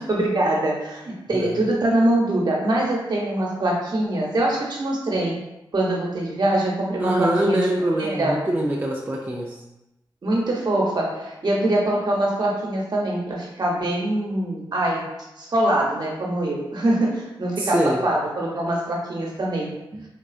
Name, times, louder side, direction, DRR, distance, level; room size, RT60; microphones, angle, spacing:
voice 1, 0.0-5.4 5.7-7.7 8.0-8.4 10.2-15.0 15.4-19.8, right 1 dB, 55° right, -3 dB, 0.8 m, -23 dB
voice 2, 7.0-9.6 17.6-18.1 19.9-20.0, right 1 dB, 20° right, -2 dB, 0.4 m, -24 dB
3.6 x 2.4 x 2.4 m, 0.93 s
cardioid pair, 65°, 9 cm